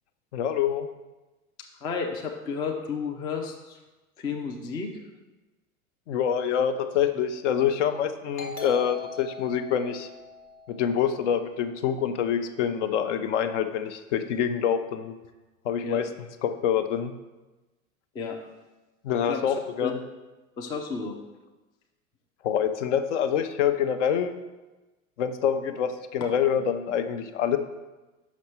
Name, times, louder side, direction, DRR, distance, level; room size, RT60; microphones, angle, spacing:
voice 1, 0.3-0.9 6.1-10.1 10.7-15.1 15.6-16.1 16.4-17.1 19.0-20.0 22.4-24.3 25.2-27.6, left 8 dB, 55° left, 9 dB, 0.7 m, -26 dB
voice 2, 1.8-3.8 4.2-4.9 15.8-16.0 18.1-18.4 19.3-19.5 19.8-19.9 20.6-21.2, left 5 dB, 10° left, 2 dB, 0.3 m, -32 dB
Doorbell, 8.4-11.7, left 3 dB, 85° left, 1.3 m, -42 dB
5.9 x 5.2 x 4.3 m, 1.1 s
figure-of-eight pair, 85°, 42 cm